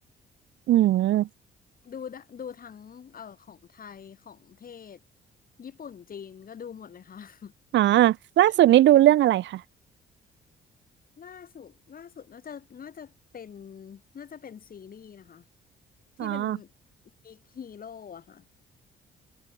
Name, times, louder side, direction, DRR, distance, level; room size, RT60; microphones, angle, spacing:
voice 1, 0.7-1.3 7.7-9.6 16.2-16.6, right 13 dB, 70° right, 0.6 m, -19 dB
voice 2, 1.8-5.0 5.6-7.5 8.5-8.6 11.2-15.5 16.2-16.7 17.2-18.5, left 7 dB, 45° left, 1.8 m, -44 dB
cardioid pair, 90°, 20 cm